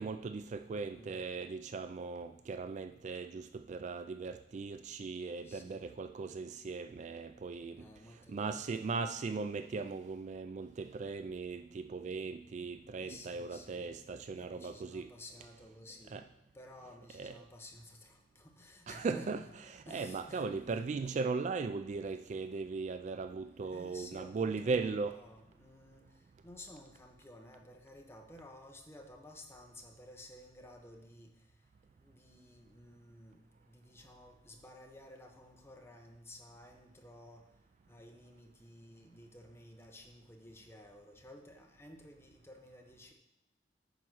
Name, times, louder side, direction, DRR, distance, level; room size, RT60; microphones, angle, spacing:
voice 1, 0.0-15.1 16.1-16.2 17.1-17.4 18.9-19.4 19.7-25.2, right 4 dB, 40° right, 9 dB, 0.3 m, -38 dB
voice 2, 0.6-1.2 5.5-5.9 7.8-9.1 12.9-13.9 14.3-16.2 16.5-19.3 19.6-20.8 23.6-26.0 26.4-31.3 32.0-37.5 37.9-43.1, left 1 dB, 15° left, 2 dB, 1.0 m, -54 dB
9.2 x 4.4 x 6.2 m, 0.86 s
head